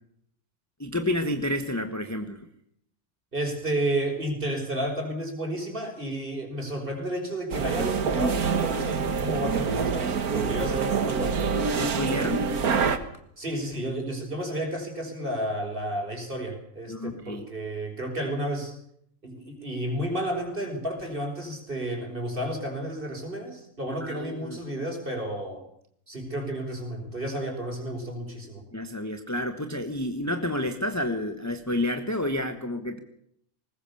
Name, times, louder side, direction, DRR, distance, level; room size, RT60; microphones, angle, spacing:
voice 1, 0.8-2.5 11.8-12.5 16.9-17.4 24.0-24.6 28.7-33.0, left 1 dB, 10° left, 7 dB, 1.3 m, -30 dB
voice 2, 3.3-11.3 13.4-18.7 19.2-25.6 26.1-28.6, right 1 dB, 35° right, 3 dB, 5.7 m, -31 dB
sound 1, 7.5-13.0, right 5 dB, 85° right, 2.0 m, -26 dB
21.0 x 19.5 x 7.1 m, 0.70 s
omnidirectional pair, 1.5 m